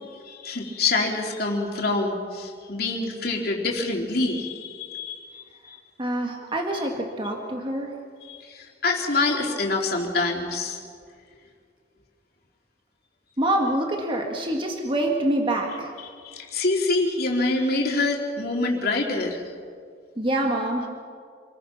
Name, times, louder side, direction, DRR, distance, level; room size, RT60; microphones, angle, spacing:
voice 1, 0.2-5.8 8.3-10.8 16.2-19.4, left 3 dB, 55° left, 0 dB, 3.6 m, -26 dB
voice 2, 6.0-7.9 13.4-15.9 20.2-20.9, right 1 dB, 25° right, 1 dB, 2.1 m, -26 dB
28.0 x 20.5 x 6.1 m, 2.1 s
head